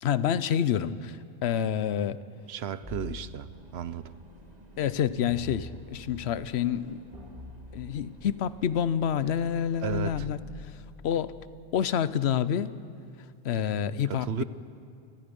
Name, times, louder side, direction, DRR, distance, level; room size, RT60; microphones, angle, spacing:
voice 1, 0.0-2.2 4.8-7.0 7.7-10.4 11.0-11.3 11.7-12.7 13.4-14.4, left 9 dB, 90° left, 16 dB, 0.9 m, -28 dB
voice 2, 2.5-4.1 9.8-10.3 14.1-14.4, right 9 dB, 80° right, 15 dB, 1.0 m, -34 dB
sound 1, 2.8-3.9 5.3-6.3 7.1-8.2 9.8-11.3, left 2 dB, 5° right, 7.6 m, -44 dB
sound 2, 3.5-10.0, right 1 dB, 40° right, 1.8 m, -53 dB
28.5 x 20.0 x 5.3 m, 2.4 s
omnidirectional pair, 1.1 m